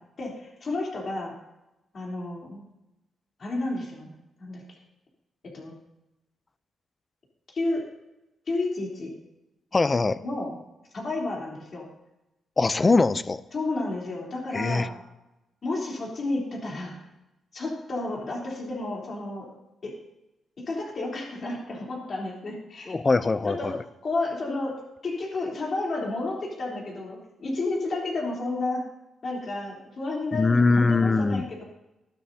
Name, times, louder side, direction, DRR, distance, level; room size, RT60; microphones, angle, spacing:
voice 1, 0.2-1.3 1.9-2.6 3.4-4.1 4.4-4.8 5.4-5.7 7.5-7.8 8.5-9.1 10.2-10.5 10.9-11.9 13.5-14.9 15.6-17.0 17.5-19.5 19.8-19.9 20.6-23.0 23.4-23.7 24.0-28.8 29.2-31.6, left 2 dB, 45° left, -2 dB, 3.4 m, -31 dB
voice 2, 9.7-10.2 12.6-13.4 14.5-14.9 22.9-23.8 30.3-31.4, left 3 dB, 25° left, 15 dB, 0.5 m, -22 dB
14.0 x 11.5 x 2.8 m, 0.97 s
cardioid pair, 120°, 0 cm